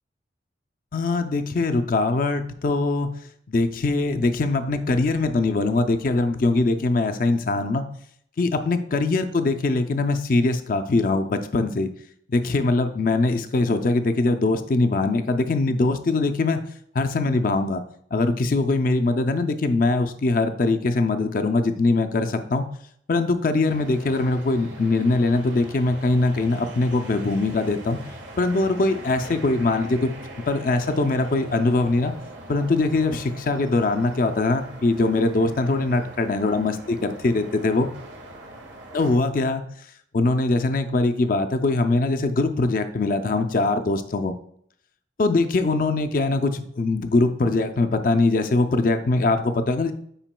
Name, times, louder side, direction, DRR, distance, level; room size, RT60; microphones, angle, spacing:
voice 1, 0.9-3.1 3.5-7.8 8.4-11.9 12.3-16.6 16.9-17.8 18.1-22.6 23.1-28.0 28.4-30.1 30.5-32.1 32.5-37.9 38.9-39.6 40.1-44.3 45.2-49.9, left 2 dB, 45° left, 8 dB, 0.4 m, -22 dB
sound 1, 23.6-39.2, right 1 dB, 85° right, 1.4 m, -42 dB
8.9 x 5.0 x 2.2 m, 0.67 s
head